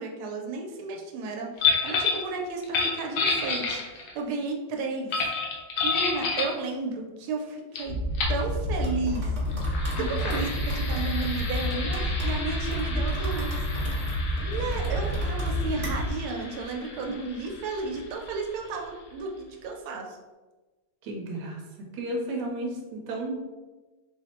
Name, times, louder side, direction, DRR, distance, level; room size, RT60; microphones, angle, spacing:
voice 1, 0.0-5.2 5.8-7.9 8.3-9.3 10.0-13.9 14.4-20.2, right 3 dB, 85° right, 1 dB, 1.5 m, -33 dB
sound 1, 1.6-2.3 2.6-4.2 5.1-6.6 7.7-7.8 8.1-8.4 9.5-18.8, left 4 dB, 80° left, 1.6 m, -31 dB
sound 2, 7.9-16.1, equal, 40° right, 0.5 m, -29 dB
voice 2, 21.0-21.6 21.9-23.4, right 2 dB, 65° right, 0 dB, 1.3 m, -32 dB
4.3 x 2.1 x 4.1 m, 1.2 s
omnidirectional pair, 2.2 m